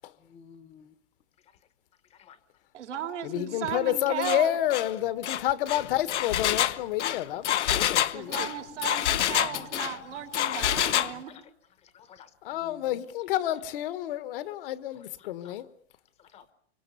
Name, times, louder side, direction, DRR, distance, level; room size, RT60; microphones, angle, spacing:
voice 1, 0.2-0.9 1.4-1.6 2.0-2.4 3.5-3.8 6.8-6.9 7.3-7.7 9.5-9.7 10.1-10.2 11.1-11.5 11.9-13.0 13.5-13.6 14.7-15.6 16.2-16.5, left 7 dB, 20° left, 1.0 m, -54 dB
voice 2, 2.7-4.6 8.1-11.3, right 10 dB, 90° right, 4.1 m, -35 dB
voice 3, 3.2-8.5 12.4-15.7, left 13 dB, 50° left, 1.3 m, -29 dB
Engine, 4.2-4.4 4.7-4.9 5.2-10.0 10.3-11.1, left 12 dB, 90° left, 1.0 m, -27 dB
27.5 x 25.0 x 6.9 m
supercardioid pair, 160°, 34 cm